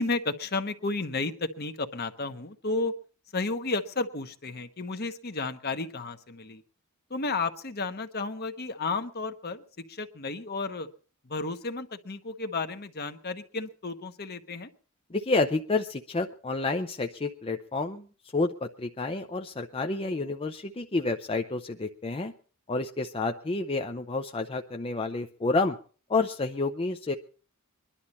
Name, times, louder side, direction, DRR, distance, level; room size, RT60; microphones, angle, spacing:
voice 1, 0.0-2.9 3.3-6.6 7.1-10.9 11.2-14.7, left 3 dB, 50° left, 8 dB, 1.1 m, -32 dB
voice 2, 15.1-18.1 18.3-22.3 22.7-25.8 26.1-27.2, left 3 dB, 25° left, 5 dB, 0.6 m, -29 dB
22.0 x 11.5 x 4.2 m, 0.40 s
head